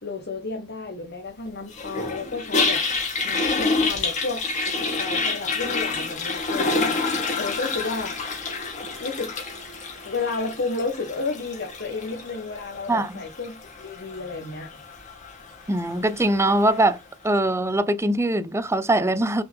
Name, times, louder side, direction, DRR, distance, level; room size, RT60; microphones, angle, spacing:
voice 1, 0.0-4.4 5.0-8.2 8.8-9.3 10.0-14.8, left 3 dB, 55° left, 1.5 m, -32 dB
Toilet flush, 1.7-16.9, left 3 dB, 40° left, 2.3 m, -28 dB
voice 2, 12.9-13.2 15.7-17.0 17.2-19.4, right 1 dB, 15° right, 0.6 m, -22 dB
6.4 x 4.9 x 3.6 m
head